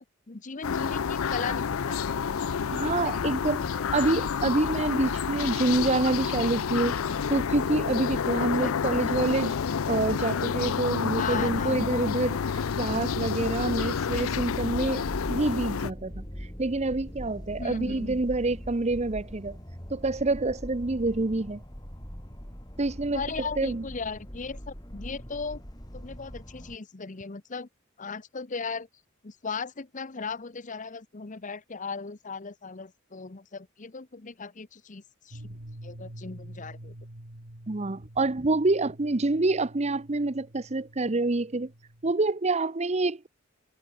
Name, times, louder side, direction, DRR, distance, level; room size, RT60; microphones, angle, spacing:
voice 1, 0.0-3.1 3.4-3.5 8.4-9.1 11.2-11.9 17.6-18.2 23.1-25.6 25.9-27.7 28.0-28.9 29.2-36.9, left 4 dB, 40° left, 0.9 m, -38 dB
sound 1, 0.6-15.9, left 6 dB, 85° left, 0.5 m, -29 dB
voice 2, 2.7-3.6 3.9-7.0 7.3-9.6 9.9-12.4 12.8-15.0 15.3-16.2 16.6-19.6 19.9-21.6 22.8-23.8 37.7-41.7 42.0-43.3, right 2 dB, 30° right, 0.8 m, -27 dB
sound 2, 12.9-26.8, equal, 20° left, 6.3 m, -41 dB
sound 3, 35.3-42.1, right 1 dB, 85° right, 3.3 m, -47 dB
head